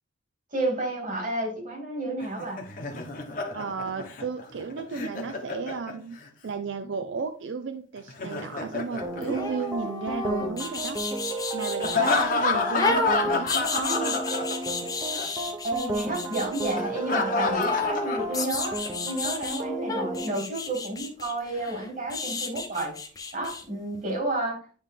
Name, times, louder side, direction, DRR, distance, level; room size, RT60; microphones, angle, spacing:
voice 1, 0.5-2.7 15.6-22.9 23.3-24.6, right 2 dB, 45° right, 0 dB, 2.5 m, -31 dB
Laughter, 2.2-6.3 8.0-10.1 11.8-14.9 15.1-15.3 16.8-18.9, left 3 dB, 45° left, 1.0 m, -29 dB
voice 2, 3.5-6.2 6.4-11.0 11.5-14.2, right 5 dB, 75° right, 8 dB, 0.5 m, -34 dB
sound 1, 9.0-20.3, right 2 dB, 15° right, 0.8 m, -34 dB
sound 2, 9.2-12.2 12.8-16.8 17.6-19.6 19.9-23.6 23.9-24.0, left 3 dB, 20° left, 0.8 m, -31 dB
9.5 x 3.2 x 3.6 m, 0.41 s
head